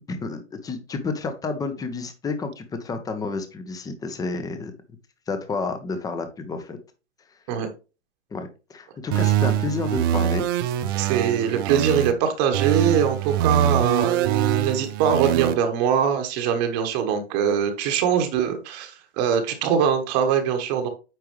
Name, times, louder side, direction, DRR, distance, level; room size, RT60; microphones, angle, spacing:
voice 1, 0.1-4.7 5.3-6.8 8.3-10.5, left 4 dB, 10° left, 1.0 m, -30 dB
sound 1, 9.1-12.1 12.5-15.5, right 11 dB, 20° right, 0.3 m, -23 dB
voice 2, 10.9-20.9, right 8 dB, 35° right, 1.4 m, -22 dB
9.0 x 4.8 x 3.1 m
hypercardioid pair, 130°, 34 cm